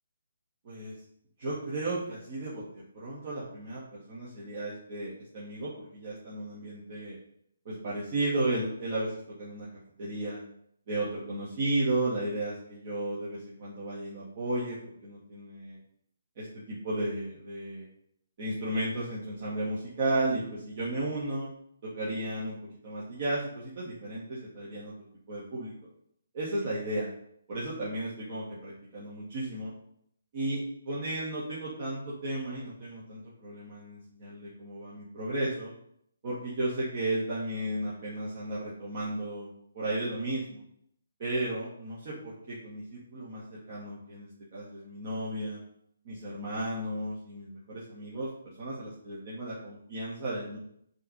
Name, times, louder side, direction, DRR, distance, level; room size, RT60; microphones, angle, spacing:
voice 1, 0.6-0.9 1.4-7.1 7.6-9.7 10.0-10.4 10.9-15.8 16.4-17.9 18.4-21.5 21.8-22.6 22.8-24.9 25.3-25.7 26.3-27.1 27.5-29.7 30.3-30.6 30.8-35.7 36.2-40.6 41.2-45.6 46.0-48.3 48.6-50.6, right 1 dB, 40° right, -8 dB, 1.7 m, -34 dB
5.4 x 3.3 x 5.3 m, 0.70 s
figure-of-eight pair, 140°, 0 cm